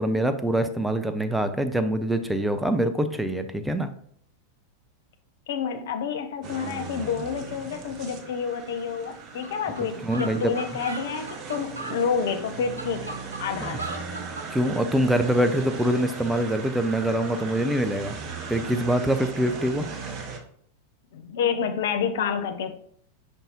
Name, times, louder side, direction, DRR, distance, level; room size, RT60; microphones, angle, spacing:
voice 1, 0.0-3.9 10.0-10.5 14.5-18.1 18.5-19.9, right 1 dB, 5° right, 9 dB, 0.4 m, -24 dB
voice 2, 5.5-14.0 21.1-22.7, left 6 dB, 55° left, 8 dB, 0.5 m, -29 dB
sound 1, 6.4-20.4, right 5 dB, 35° right, 0.7 m, -38 dB
sound 2, 9.4-9.5 9.8-9.9 10.1-12.0 12.5-14.5, right 2 dB, 75° right, 0.7 m, -36 dB
5.4 x 3.5 x 2.8 m, 0.63 s
figure-of-eight pair, 90°, 0 cm